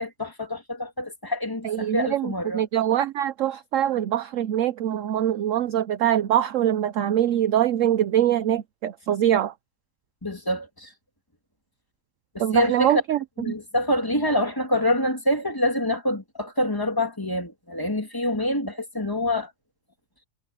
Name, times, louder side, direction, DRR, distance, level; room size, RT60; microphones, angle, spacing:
voice 1, 0.0-2.6 10.2-10.9 12.3-13.0 13.4-19.5, left 1 dB, 10° left, 2.5 m, -26 dB
voice 2, 1.6-9.5 12.4-13.2 13.5-13.6, right 11 dB, 65° right, 0.8 m, -23 dB
omnidirectional pair, 1.8 m